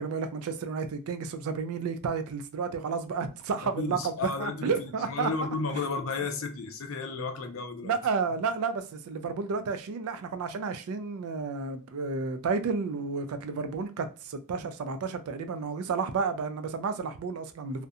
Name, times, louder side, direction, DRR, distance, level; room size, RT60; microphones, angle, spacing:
voice 1, 0.0-4.1 4.4-5.3 7.8-17.9, right 5 dB, 85° right, 0.4 m, -31 dB
voice 2, 3.6-8.0, left 4 dB, 65° left, 0.5 m, -33 dB
2.6 x 2.1 x 2.4 m
head